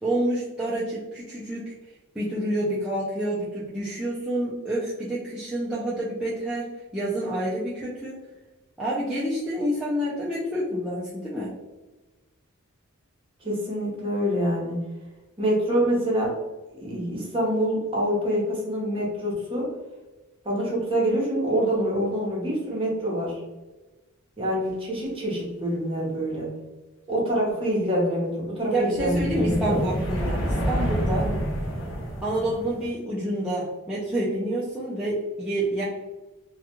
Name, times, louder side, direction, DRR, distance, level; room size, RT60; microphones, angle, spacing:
voice 1, 0.0-1.6 2.1-6.7 6.9-8.2 8.8-11.5 28.7-31.3 32.2-35.8, right 1 dB, 5° right, -9 dB, 0.4 m, -28 dB
voice 2, 13.4-14.8 15.4-16.3 16.8-19.6 20.4-23.3 24.4-26.5 27.1-29.8 31.1-31.4, equal, 25° right, -5 dB, 0.9 m, -26 dB
sound 1, 28.9-32.9, equal, 60° left, 0.7 m, -28 dB
2.3 x 2.3 x 2.9 m, 1.1 s
head